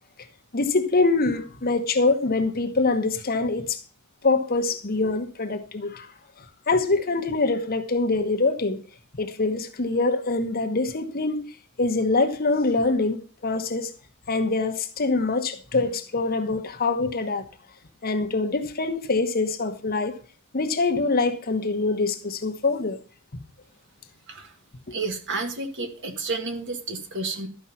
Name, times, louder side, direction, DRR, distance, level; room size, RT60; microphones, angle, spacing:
voice 1, 0.5-3.8 4.2-6.1 6.7-8.8 9.1-11.5 11.8-13.9 14.3-17.4 18.0-20.1 20.5-23.0 24.9-25.0, left 3 dB, 40° left, 1.1 m, -24 dB
voice 2, 24.9-27.5, right 3 dB, 55° right, 1.9 m, -31 dB
12.5 x 5.4 x 5.7 m
head